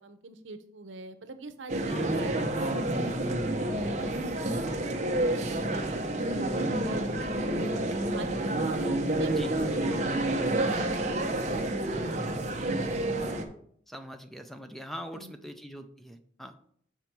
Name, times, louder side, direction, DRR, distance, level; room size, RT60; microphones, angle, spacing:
voice 1, 0.0-4.1 4.4-5.2 5.5-6.4 6.8-8.5 9.0-9.3 10.2-12.3 15.1-15.3, right 3 dB, 85° right, 10 dB, 0.8 m, -44 dB
sound 1, 1.7-13.4, right 1 dB, 35° right, 0.8 m, -29 dB
voice 2, 1.9-2.2 9.3-9.5 13.9-16.6, equal, ahead, 7 dB, 0.5 m, -42 dB
7.0 x 5.5 x 4.5 m, 0.63 s
head